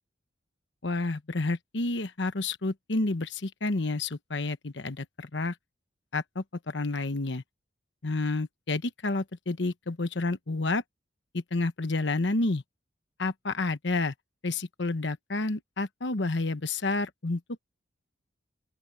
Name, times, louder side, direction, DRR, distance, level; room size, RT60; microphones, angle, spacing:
voice 1, 0.8-5.5 6.1-7.4 8.0-10.8 11.3-12.6 13.2-14.1 14.4-17.4, left 2 dB, 70° left, 1.1 m, -30 dB
open air
head